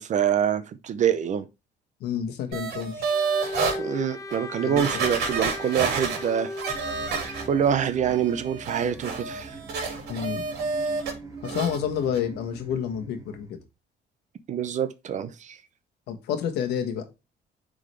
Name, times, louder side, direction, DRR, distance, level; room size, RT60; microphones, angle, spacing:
voice 1, 0.0-1.5 3.7-6.5 7.5-9.5 14.5-15.6, right 8 dB, 45° right, 0.7 m, -25 dB
voice 2, 2.0-3.1 4.6-5.0 10.1-10.4 11.4-13.6 16.1-17.1, left 8 dB, 80° left, 1.3 m, -29 dB
sound 1, 2.5-3.8 4.3-4.4 4.8-7.7 8.1-11.1 11.4-11.8 12.1-12.2, right 4 dB, 70° right, 2.4 m, -29 dB
Bowed string instrument, 3.1-7.6, left 2 dB, 20° left, 0.5 m, -37 dB
sound 2, 6.7-13.5, right 3 dB, 20° right, 1.5 m, -42 dB
9.6 x 3.9 x 3.2 m
cardioid pair, 110°, 17 cm